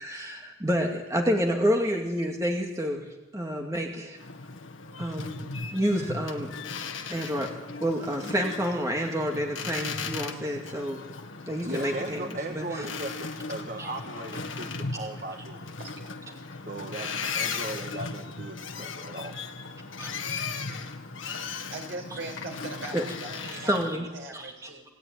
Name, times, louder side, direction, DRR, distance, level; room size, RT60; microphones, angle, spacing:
voice 1, 0.0-3.1 3.3-4.2 5.0-5.3 5.7-6.5 7.1-7.5 7.8-11.0 11.5-12.6 13.8-13.9 20.0-20.1 22.9-23.0 23.4-24.1 24.3-24.5, equal, 15° right, 0 dB, 2.4 m, -28 dB
Boat Water vehicle, 4.2-24.0, left 4 dB, 65° left, 1.6 m, -37 dB
voice 2, 11.6-15.6 16.6-19.4, right 2 dB, 40° right, 4 dB, 1.8 m, -37 dB
voice 3, 15.8-16.2 21.7-23.8 24.1-24.8, right 2 dB, 60° right, 3 dB, 5.1 m, -40 dB
28.0 x 17.0 x 9.2 m, 1.1 s
head